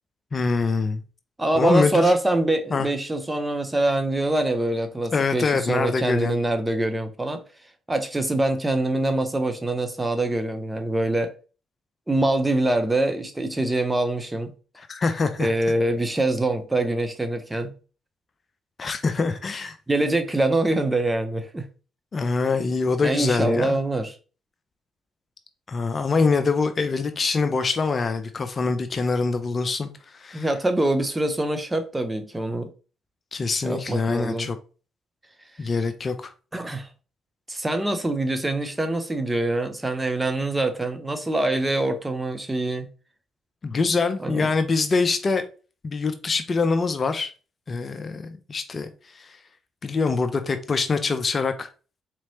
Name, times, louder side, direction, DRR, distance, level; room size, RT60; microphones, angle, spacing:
voice 1, 0.3-1.0 1.5-2.1 2.7-2.9 5.1-6.4 14.8-15.5 18.8-19.8 22.1-23.8 25.7-30.5 33.3-34.6 35.6-36.3 43.6-45.4 45.8-47.3 47.7-48.9 49.1-49.4 49.8-51.7, left 4 dB, 40° left, 0.5 m, -24 dB
voice 2, 1.4-7.4 7.9-11.3 12.1-14.5 15.4-17.7 19.9-21.7 23.0-24.1 30.3-32.7 33.6-34.5 36.5-36.9 37.5-42.9 44.2-44.5, right 2 dB, 15° right, 0.9 m, -24 dB
4.1 x 3.0 x 2.9 m
hypercardioid pair, 50°, 0 cm